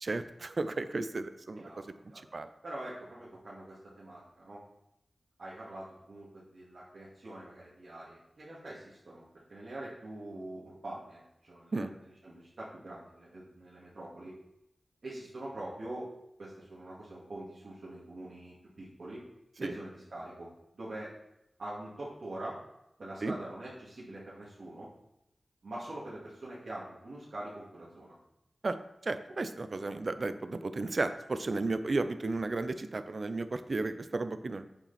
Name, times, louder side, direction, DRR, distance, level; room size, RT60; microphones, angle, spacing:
voice 1, 0.0-1.6 2.3-2.5 11.7-11.9 19.6-19.7 23.2-23.3 28.6-28.8 29.0-34.6, right 3 dB, 55° right, 10 dB, 0.7 m, -33 dB
voice 2, 1.6-2.2 2.6-4.6 5.4-11.2 11.5-14.3 15.0-16.1 16.4-19.2 19.6-20.5 20.7-21.1 21.6-22.6 23.0-24.9 25.6-28.1, right 1 dB, 75° right, -8 dB, 2.4 m, -44 dB
8.5 x 7.4 x 4.3 m, 0.85 s
wide cardioid pair, 65°, 0 cm